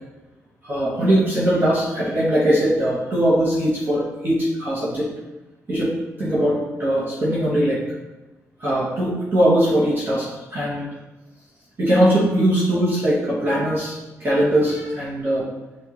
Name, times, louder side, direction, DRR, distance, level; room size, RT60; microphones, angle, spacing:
voice 1, 0.6-5.1 5.7-5.9 6.2-7.8 8.6-10.9 11.8-15.4, right 1 dB, 40° right, -7 dB, 1.2 m, -20 dB
5.9 x 2.7 x 3.0 m, 1.0 s
cardioid pair, 125°, 6 cm